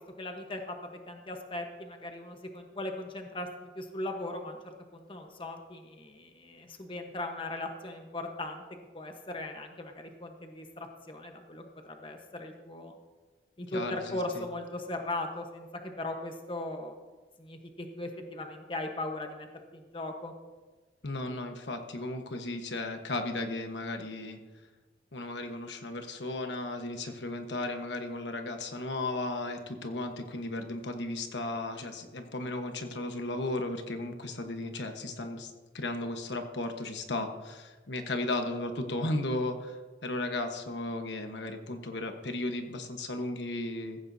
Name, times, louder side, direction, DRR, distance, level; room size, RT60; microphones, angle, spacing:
voice 1, 0.0-8.6 8.9-12.9 13.6-16.9 17.4-20.3, left 2 dB, 30° left, 4 dB, 1.2 m, -38 dB
voice 2, 13.7-14.4 21.0-24.4 25.1-39.8 40.0-44.0, left 2 dB, 85° left, 5 dB, 1.3 m, -35 dB
15.5 x 15.0 x 2.8 m, 1.3 s
head